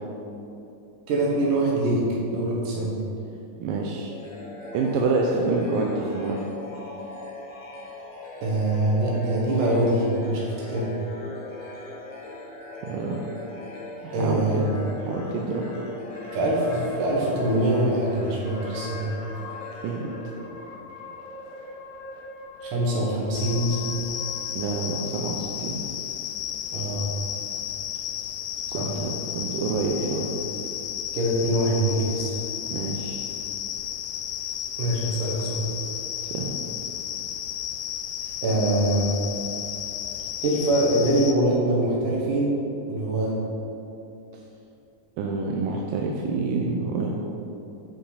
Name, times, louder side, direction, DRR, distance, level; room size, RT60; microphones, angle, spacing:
voice 1, 1.1-3.0 8.4-10.9 14.1-14.8 16.3-19.1 22.6-24.0 26.7-27.1 28.7-28.9 31.1-32.4 34.8-35.7 38.4-39.2 40.4-42.6 42.9-43.4, right 1 dB, 70° right, -3 dB, 2.8 m, -24 dB
voice 2, 3.6-4.1 4.7-6.4 12.8-13.2 14.0-14.7 15.0-15.6 19.8-20.1 20.5-20.6 24.5-25.8 28.7-30.3 32.7-33.2 36.2-36.6 45.2-47.2, right 3 dB, 85° right, 0 dB, 2.3 m, -27 dB
sound 1, 4.1-20.9, left 2 dB, 65° left, 3.0 m, -39 dB
sound 2, 16.1-17.5 18.0-18.1 18.4-19.7 19.9-25.1, left 2 dB, 35° right, 1.9 m, -42 dB
sound 3, 23.3-41.3, left 10 dB, 85° left, 1.6 m, -33 dB
9.2 x 4.8 x 4.8 m, 2.8 s
omnidirectional pair, 3.9 m